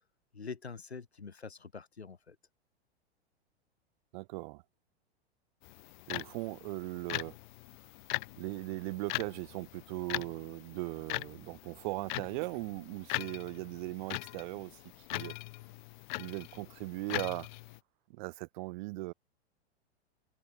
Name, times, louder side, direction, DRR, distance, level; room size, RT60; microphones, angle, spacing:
voice 1, 0.3-2.4, left 5 dB, 80° left, 4.8 m, -45 dB
voice 2, 4.1-4.6 6.1-7.4 8.4-14.7 15.1-15.4 16.2-17.5 18.1-19.1, right 24 dB, 45° right, 3.7 m, -39 dB
sound 1, 5.6-17.8, left 21 dB, 45° left, 1.5 m, -41 dB
figure-of-eight pair, 95°, 32 cm